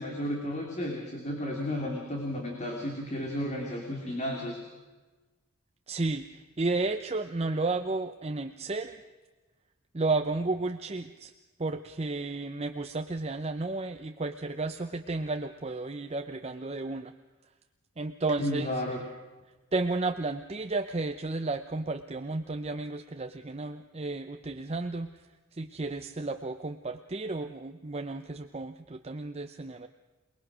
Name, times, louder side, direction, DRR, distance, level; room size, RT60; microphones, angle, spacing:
voice 1, 0.0-4.6 18.4-19.0, left 1 dB, 35° left, 0 dB, 3.1 m, -33 dB
voice 2, 5.9-9.0 9.9-11.3 11.6-17.1 18.0-18.7 19.7-25.1 25.5-29.9, right 3 dB, 30° right, 7 dB, 0.7 m, -32 dB
28.0 x 20.0 x 6.2 m, 1.3 s
head